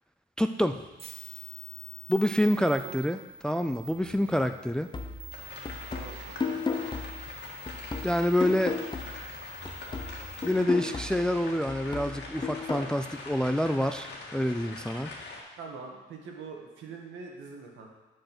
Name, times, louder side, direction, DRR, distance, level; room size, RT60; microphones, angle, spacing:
voice 1, 0.4-0.8 2.1-3.2 3.4-4.9 8.0-8.8 10.4-15.1, left 1 dB, 5° left, 8 dB, 0.3 m, -27 dB
sound 1, 1.0-10.5, right 1 dB, 30° right, 1.5 m, -46 dB
voice 2, 2.8-3.1 5.9-6.6 15.6-17.9, right 4 dB, 75° right, 1 dB, 1.6 m, -44 dB
sound 2, 4.9-9.4 9.6-12.9, left 4 dB, 20° left, 0.8 m, -35 dB
sound 3, 5.3-15.4, left 3 dB, 60° left, 1.7 m, -44 dB
6.4 x 5.4 x 6.0 m, 1.2 s
cardioid pair, 90°, 20 cm